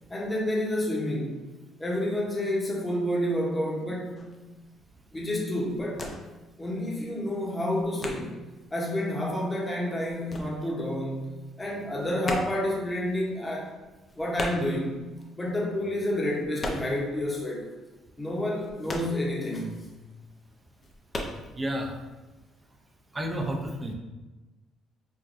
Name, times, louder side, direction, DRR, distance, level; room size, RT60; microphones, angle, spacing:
voice 1, 0.1-1.4 1.8-4.3 5.1-6.1 6.6-8.4 8.7-13.7 14.1-15.0 15.4-17.7 18.2-19.9, left 1 dB, 20° left, -3 dB, 0.9 m, -29 dB
sound 1, 4.2-4.4 4.9-5.2 5.5-6.5 6.7-8.6 8.9-11.2 11.4-17.2 17.4-17.5 17.9-19.9 20.2-20.3 20.7-21.4, left 1 dB, 35° left, 0.5 m, -37 dB
voice 2, 21.5-21.9 23.1-23.9, right 1 dB, 20° right, 2 dB, 0.6 m, -30 dB
4.6 x 2.2 x 2.6 m, 1.1 s
cardioid pair, 95°, 0 cm